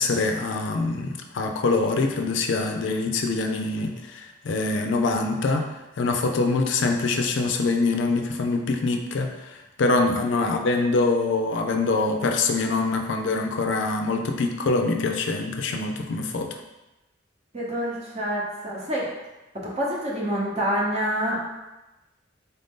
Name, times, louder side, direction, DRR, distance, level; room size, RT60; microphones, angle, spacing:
voice 1, 0.0-5.7 6.0-16.5, left 3 dB, 65° left, 4 dB, 0.4 m, -24 dB
voice 2, 17.5-19.1 19.6-21.4, equal, 35° right, -4 dB, 0.8 m, -27 dB
4.1 x 2.6 x 3.6 m, 1.0 s
head